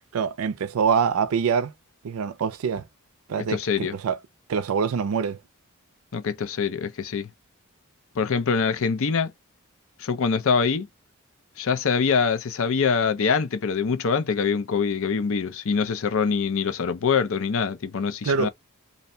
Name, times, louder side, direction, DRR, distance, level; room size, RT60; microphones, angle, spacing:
voice 1, 0.1-1.7 2.0-2.9 3.3-4.2 4.5-5.4 18.2-18.5, right 6 dB, 70° right, 0.4 m, -25 dB
voice 2, 3.5-3.9 6.1-7.3 8.1-9.3 10.0-10.9 11.6-18.5, left 5 dB, 65° left, 0.6 m, -24 dB
2.6 x 2.1 x 2.6 m
head